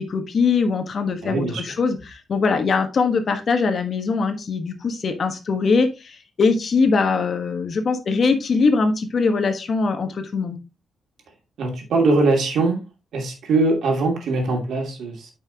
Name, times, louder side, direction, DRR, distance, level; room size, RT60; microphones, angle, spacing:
voice 1, 0.0-10.6, left 4 dB, 50° left, 7 dB, 1.3 m, -22 dB
voice 2, 1.2-1.6 11.6-12.8 13.1-15.3, right 3 dB, 80° right, 2 dB, 2.7 m, -21 dB
8.9 x 5.6 x 2.9 m, 0.28 s
wide cardioid pair, 135°, 0 cm